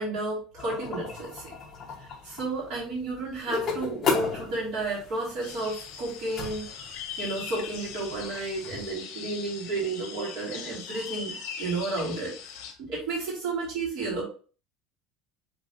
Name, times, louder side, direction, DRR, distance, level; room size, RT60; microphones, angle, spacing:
voice 1, 0.0-1.5 2.0-6.9 7.2-14.2, right 2 dB, 50° right, -7 dB, 2.0 m, -32 dB
sound 1, 0.6-8.9, left 4 dB, 25° left, 1.0 m, -35 dB
sound 2, 5.4-12.7, left 7 dB, 60° left, 0.9 m, -40 dB
5.5 x 3.3 x 2.6 m, 0.38 s
cardioid pair, 175°, 0 cm